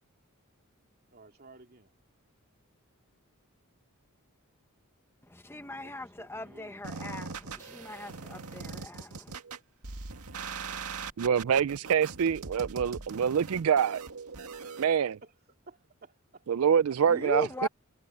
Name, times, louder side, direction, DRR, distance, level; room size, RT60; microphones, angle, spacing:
voice 1, 1.1-1.9 5.8-5.9 6.2-6.8 10.6-10.9 11.8-11.9 15.2-16.4, right 2 dB, 45° right, 2.8 m, -55 dB
voice 2, 5.2-9.3 17.1-17.7, left 1 dB, 10° left, 1.0 m, -39 dB
sound 1, 6.8-14.8, right 4 dB, 85° right, 1.9 m, -41 dB
voice 3, 11.2-14.0 14.8-15.2 16.5-17.7, right 7 dB, 70° right, 0.4 m, -26 dB
head